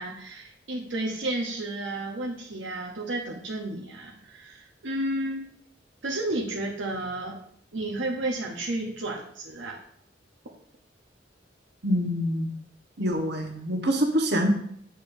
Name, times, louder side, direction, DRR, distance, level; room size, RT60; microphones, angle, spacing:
voice 1, 0.0-5.5 6.0-7.4 7.7-9.8, right 1 dB, 85° right, -1 dB, 0.9 m, -32 dB
voice 2, 11.8-12.5 13.0-14.5, equal, 60° right, 1 dB, 1.3 m, -25 dB
8.6 x 6.3 x 2.7 m, 0.66 s
head